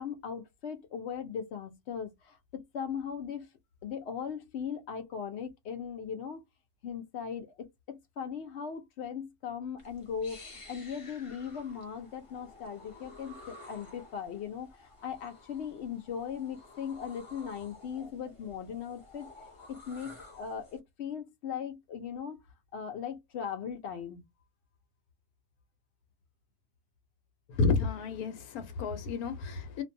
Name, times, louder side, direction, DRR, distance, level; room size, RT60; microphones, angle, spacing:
voice 1, 0.0-3.5 3.8-6.4 6.8-19.3 19.7-22.4 22.7-24.3, left 7 dB, 65° left, 0.7 m, -39 dB
sound 1, 9.8-20.8, left 2 dB, 25° left, 0.9 m, -52 dB
voice 2, 27.5-29.8, left 4 dB, 80° left, 1.1 m, -30 dB
2.5 x 2.2 x 2.6 m
omnidirectional pair, 1.6 m